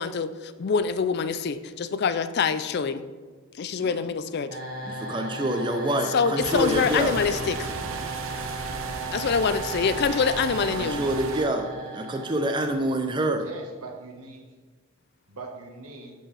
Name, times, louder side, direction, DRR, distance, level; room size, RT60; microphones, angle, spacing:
voice 1, 0.0-3.0 3.6-4.6 6.1-7.7 9.1-11.0, left 5 dB, 50° left, 12 dB, 0.4 m, -25 dB
sound 1, 4.5-13.4, right 3 dB, 40° right, 1.1 m, -36 dB
voice 2, 4.8-7.2 10.8-13.5, right 1 dB, 20° right, 5 dB, 0.5 m, -27 dB
sound 2, 6.4-11.4, right 4 dB, 65° right, 0.6 m, -36 dB
voice 3, 13.3-14.4 15.3-16.1, right 3 dB, 85° right, 1 dB, 1.3 m, -41 dB
11.5 x 4.6 x 3.3 m, 1.4 s
head